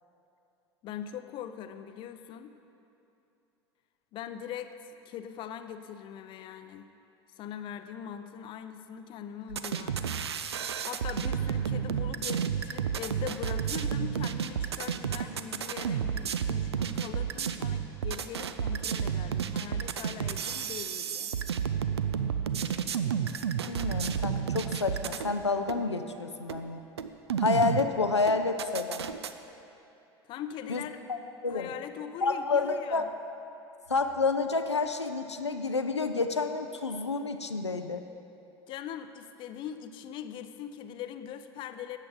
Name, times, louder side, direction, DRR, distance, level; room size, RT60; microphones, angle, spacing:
voice 1, 0.8-2.5 4.1-6.9 7.4-10.2 10.6-21.3 30.2-31.0 31.5-33.1 38.7-42.0, left 9 dB, 35° left, 10 dB, 0.5 m, -41 dB
sound 1, 9.5-25.3 25.7-25.8 26.5-26.6 27.0-27.9 28.3-29.3, right 8 dB, 75° right, 0.4 m, -31 dB
voice 2, 23.7-26.8 27.4-29.0 30.7-30.8 31.1-31.2 31.4-31.7 32.2-33.0 33.9-38.0, left 4 dB, 85° left, 7 dB, 0.4 m, -29 dB
13.5 x 8.8 x 3.8 m, 2.8 s
figure-of-eight pair, 75°, 14 cm